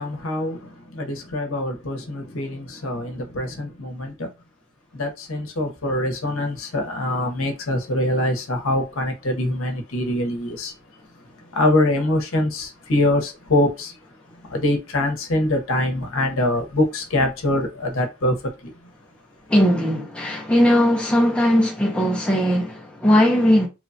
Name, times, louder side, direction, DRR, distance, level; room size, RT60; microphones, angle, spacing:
voice 1, 0.0-4.3 4.9-10.7 11.5-14.0 14.4-18.7, left 1 dB, 75° left, 0.8 m, -24 dB
voice 2, 19.5-23.7, equal, 5° left, 0.5 m, -18 dB
3.0 x 2.2 x 2.6 m
head